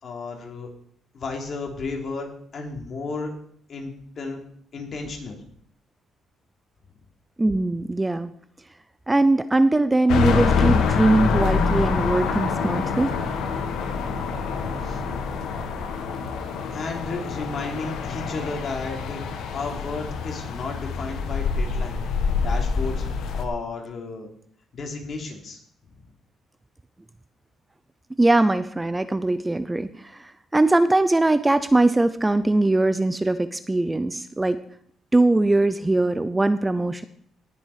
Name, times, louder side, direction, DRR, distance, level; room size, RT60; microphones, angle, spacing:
voice 1, 0.0-0.7 1.1-3.3 3.7-4.4 4.7-5.4 14.8-15.0 16.7-22.0 22.4-24.3 24.7-25.6 25.9-26.0, left 3 dB, 50° left, 2 dB, 3.2 m, -33 dB
voice 2, 7.4-8.3 9.1-13.2 28.2-34.6 35.1-37.0, right 2 dB, 15° right, 13 dB, 0.6 m, -21 dB
sound 1, 10.1-23.4, left 5 dB, 80° left, 1.4 m, -26 dB
18.0 x 7.1 x 5.0 m, 0.63 s
cardioid pair, 90°, 0 cm